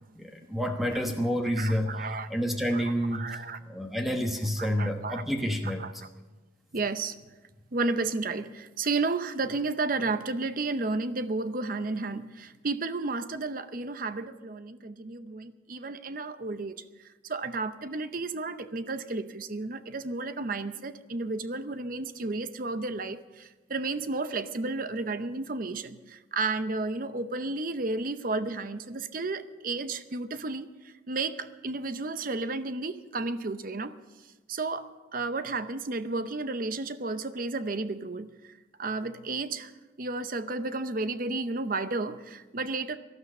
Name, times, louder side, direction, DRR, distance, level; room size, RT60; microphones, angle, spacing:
voice 1, 0.1-5.8, equal, ahead, 2 dB, 1.1 m, -29 dB
voice 2, 1.6-2.3 2.7-2.8 3.1-3.6 4.8-5.2 5.8-5.9 6.7-7.2 7.7-16.7 17.2-30.7 31.1-33.9 34.5-38.3 38.8-39.7 40.0-43.0, right 3 dB, 45° right, 11 dB, 0.7 m, -32 dB
18.0 x 12.5 x 5.4 m, 1.2 s
head